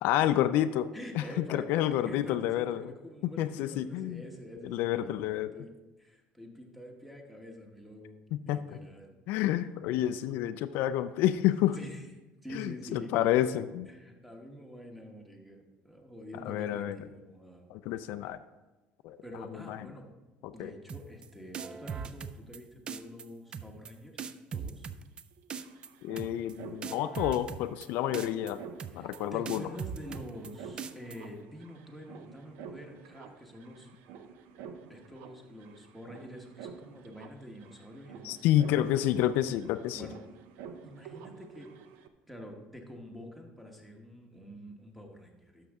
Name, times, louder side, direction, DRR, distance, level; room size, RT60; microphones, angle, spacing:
voice 1, 0.0-0.9 1.2-1.3 1.5-2.8 3.4-4.2 4.6-5.5 8.5-8.6 9.3-11.8 12.5-13.9 16.4-17.0 17.7-18.4 19.0-19.2 19.7-19.8 20.6-20.7 26.0-28.6 28.9-29.6 38.2-40.1, left 12 dB, 65° left, 11 dB, 0.3 m, -29 dB
voice 2, 0.9-5.0 5.5-5.7 6.0-8.2 8.4-9.2 11.7-12.1 12.4-13.3 13.9-17.7 19.2-20.1 20.5-24.9 28.9-33.9 34.9-38.5 39.9-40.2 40.8-41.7 42.3-45.7, equal, ahead, 2 dB, 1.0 m, -47 dB
sound 1, 20.9-21.3 21.5-22.6 22.9-23.2 23.5-23.9 24.2-25.2 25.5-25.9 26.2-26.5 26.8-27.9 28.1-28.5 28.8-29.2 29.5-30.5 30.8-31.2, right 6 dB, 25° right, 0.3 m, -39 dB
sound 2, 25.0-25.1 25.3-42.1, right 6 dB, 70° right, 0.6 m, -50 dB
11.5 x 6.3 x 3.5 m, 1.1 s
cardioid pair, 165°, 4 cm